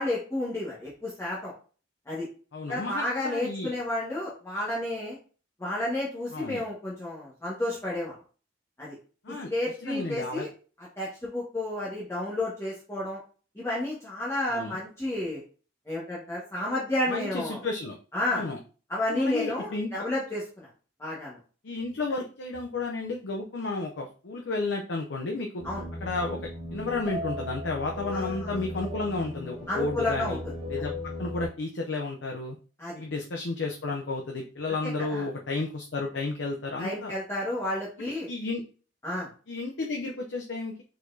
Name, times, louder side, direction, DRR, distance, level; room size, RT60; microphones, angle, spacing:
voice 1, 0.0-1.5 2.1-2.3 2.7-5.2 5.6-8.1 8.8-8.9 9.3-10.5 11.0-13.2 13.5-15.4 15.9-17.6 18.1-18.4 18.9-20.7 21.0-21.4 25.6-25.9 28.1-28.6 29.7-30.4 32.8-33.0 34.8-35.3 36.8-38.3 39.0-39.3, left 1 dB, 15° left, -8 dB, 1.4 m, -31 dB
voice 2, 2.5-3.7 6.3-6.6 9.2-9.5 9.8-10.5 14.5-14.8 17.1-18.0 18.3-18.6 19.1-20.0 21.6-25.6 26.0-26.4 26.7-30.4 30.7-30.9 31.2-32.6 32.9-37.2 38.3-38.6 39.5-40.8, left 3 dB, 70° left, 1 dB, 0.6 m, -32 dB
sound 1, 25.6-31.5, left 1 dB, 35° right, 1.8 m, -36 dB
4.7 x 4.1 x 2.7 m, 0.38 s
head